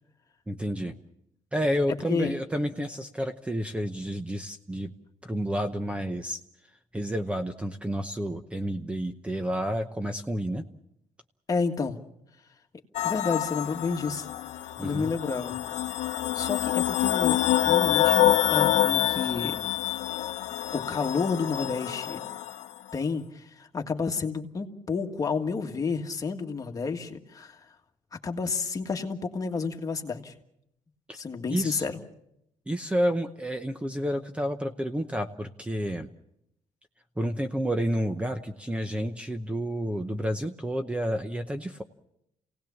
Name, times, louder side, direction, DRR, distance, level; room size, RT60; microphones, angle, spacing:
voice 1, 0.5-0.9 1.5-4.9 5.2-6.4 6.9-10.7 14.8-15.1 31.5-31.8 32.7-36.1 37.2-41.8, equal, 10° right, 7 dB, 0.8 m, -30 dB
voice 2, 11.5-12.0 13.0-14.3 14.6-15.6 16.3-19.7 20.7-22.2 22.9-27.7 28.2-30.3 31.1-32.0, left 5 dB, 30° left, 4 dB, 1.7 m, -30 dB
sound 1, 12.9-22.7, left 13 dB, 80° left, 0.8 m, -26 dB
27.5 x 18.0 x 7.2 m, 0.80 s
cardioid pair, 135°, 12 cm